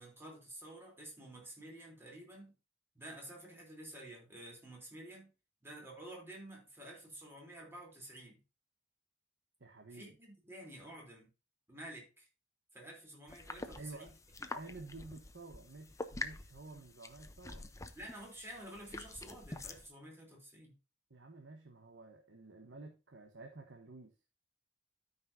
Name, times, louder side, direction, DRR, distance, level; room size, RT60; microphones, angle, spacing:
voice 1, 0.0-2.5 2.9-5.3 5.6-8.4 9.9-11.3 11.7-12.3 12.7-14.1 17.9-20.7, right 1 dB, 15° right, 3.4 m, -50 dB
voice 2, 9.6-10.2 13.7-14.1 14.5-17.7 21.1-24.1, right 3 dB, 70° right, 1.2 m, -51 dB
sound 1, 13.3-19.9, left 2 dB, 15° left, 0.7 m, -46 dB
13.0 x 5.5 x 2.7 m
head